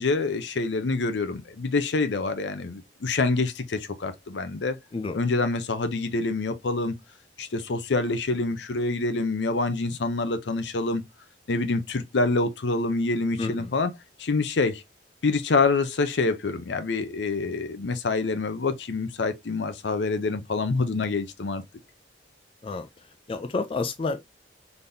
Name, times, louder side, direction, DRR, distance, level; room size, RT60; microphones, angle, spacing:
voice 1, 0.0-4.8 5.1-7.0 7.4-11.0 11.5-13.9 14.2-14.8 15.2-21.6, left 3 dB, 80° left, 0.6 m, -26 dB
voice 2, 13.4-13.7 22.6-22.9 23.3-24.2, left 3 dB, 30° left, 0.4 m, -29 dB
4.0 x 3.5 x 2.6 m
head